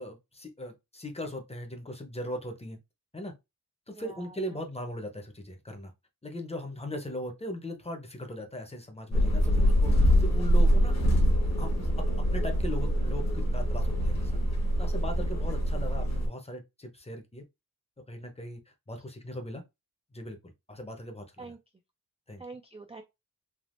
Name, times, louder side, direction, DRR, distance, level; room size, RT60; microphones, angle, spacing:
voice 1, 0.0-2.8 3.1-3.3 3.9-5.9 6.2-10.9 11.6-14.3 14.8-17.4 18.1-18.6 18.9-19.6 20.1-20.4 20.7-21.5 22.3-22.4, left 1 dB, 15° left, 0.7 m, -39 dB
voice 2, 3.9-4.6 21.4-21.6 22.4-23.0, right 3 dB, 15° right, 0.3 m, -45 dB
sound 1, 9.1-16.3, equal, 45° left, 1.0 m, -25 dB
3.5 x 2.4 x 2.5 m
wide cardioid pair, 95°, 36 cm